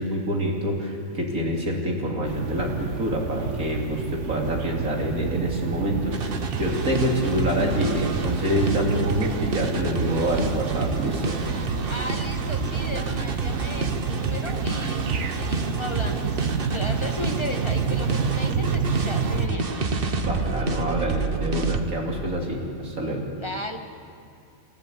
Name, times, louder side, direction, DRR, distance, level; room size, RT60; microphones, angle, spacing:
voice 1, 0.0-11.3 20.2-23.3, equal, 85° right, -1 dB, 3.6 m, -26 dB
sound 1, 2.2-19.5, right 6 dB, 60° right, 1.2 m, -29 dB
sound 2, 6.1-21.8, right 3 dB, 45° right, 1.3 m, -29 dB
voice 2, 7.1-7.4 11.9-15.1 15.3-19.7 23.4-23.8, left 1 dB, 20° left, 4 dB, 1.6 m, -35 dB
29.5 x 14.0 x 8.5 m, 2.6 s
omnidirectional pair, 1.4 m